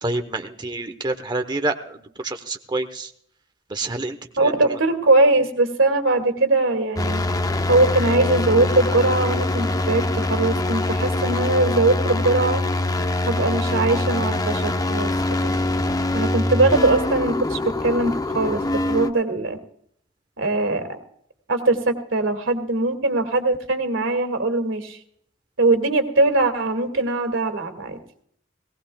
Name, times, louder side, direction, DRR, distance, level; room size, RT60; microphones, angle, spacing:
voice 1, 0.0-3.1 3.7-4.5, right 2 dB, 25° right, 6 dB, 0.9 m, -28 dB
voice 2, 4.4-7.2 7.7-12.6 13.2-15.6 16.1-19.6 20.4-21.0 21.5-25.0 25.6-28.0, right 2 dB, 90° right, 6 dB, 2.2 m, -21 dB
sound 1, 7.0-19.1, left 2 dB, 20° left, 0.7 m, -23 dB
19.0 x 18.0 x 2.3 m, 0.66 s
head